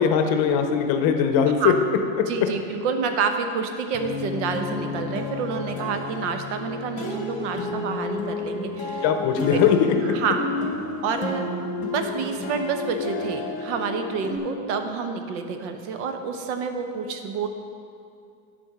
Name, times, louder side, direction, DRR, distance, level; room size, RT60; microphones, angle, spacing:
voice 1, 0.0-1.7 9.0-9.8, left 8 dB, 45° left, 6 dB, 0.7 m, -20 dB
voice 2, 2.2-9.0 9.5-9.6 10.0-10.4 11.0-11.5 11.8-17.5, right 5 dB, 80° right, 6 dB, 0.9 m, -28 dB
sound 1, 3.9-14.4, left 3 dB, 20° left, 1.0 m, -31 dB
10.5 x 4.4 x 5.8 m, 2.4 s
cardioid pair, 165°, 35 cm